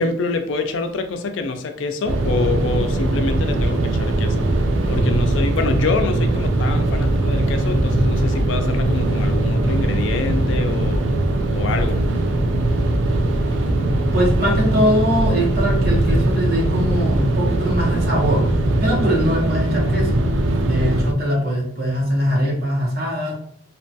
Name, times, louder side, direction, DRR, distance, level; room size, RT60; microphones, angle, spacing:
voice 1, 0.0-4.5 4.9-11.0 11.5-12.0, left 4 dB, 80° left, 7 dB, 0.4 m, -26 dB
sound 1, 2.1-21.1, right 1 dB, 80° right, 0.4 m, -20 dB
voice 2, 14.1-18.5 18.8-20.2 20.6-23.3, equal, 55° right, -3 dB, 0.9 m, -21 dB
2.8 x 2.2 x 2.7 m, 0.64 s
head